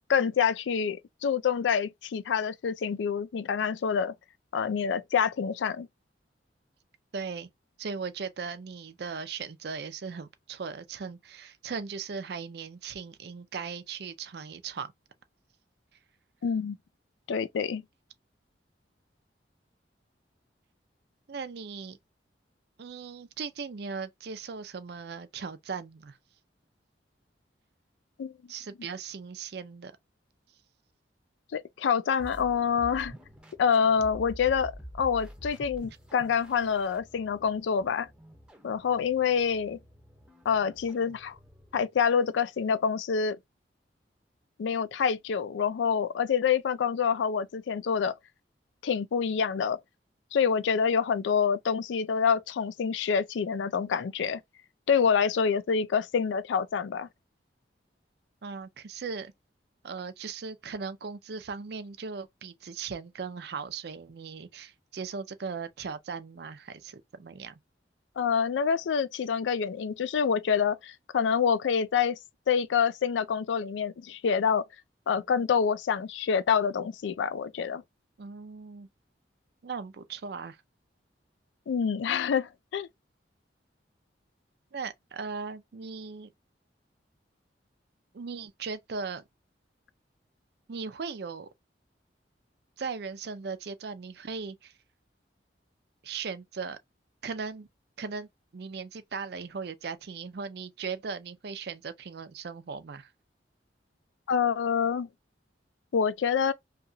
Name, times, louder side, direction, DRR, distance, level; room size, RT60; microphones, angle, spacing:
voice 1, 0.0-4.1 4.5-5.9 16.4-16.8 17.3-17.8 28.2-28.3 31.5-33.1 33.6-34.7 35.0-38.1 38.6-39.8 40.5-41.4 41.7-43.4 44.6-48.1 48.8-49.8 50.3-54.4 54.9-57.1 68.2-72.2 72.5-74.7 75.1-77.8 81.7-82.9 104.3-105.1 105.9-106.5, left 6 dB, 85° left, 0.4 m, -27 dB
voice 2, 7.1-7.5 7.8-14.9 21.3-22.0 22.8-26.2 28.5-29.9 58.4-59.3 59.8-67.6 78.2-78.9 79.6-80.6 84.7-86.3 88.1-89.2 90.7-91.5 92.8-94.7 96.0-96.8 97.2-97.7 98.0-103.1, right 5 dB, 60° right, 0.5 m, -38 dB
sound 1, 32.2-41.9, equal, 5° right, 0.6 m, -48 dB
2.8 x 2.2 x 2.6 m
head